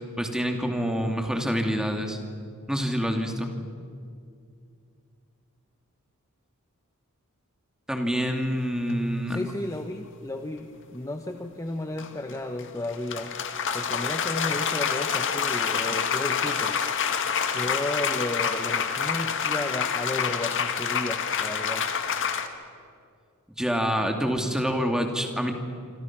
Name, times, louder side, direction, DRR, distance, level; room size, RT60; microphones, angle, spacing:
voice 1, 0.2-2.2 2.7-3.5 7.9-9.4 23.6-25.5, equal, 5° right, 3 dB, 2.5 m, -26 dB
sound 1, 8.9-9.0 12.0-22.5, left 7 dB, 60° left, 1.9 m, -27 dB
voice 2, 9.3-13.4 13.7-16.8 17.5-21.9, left 1 dB, 15° left, 6 dB, 1.0 m, -33 dB
27.0 x 26.5 x 6.1 m, 2.3 s
head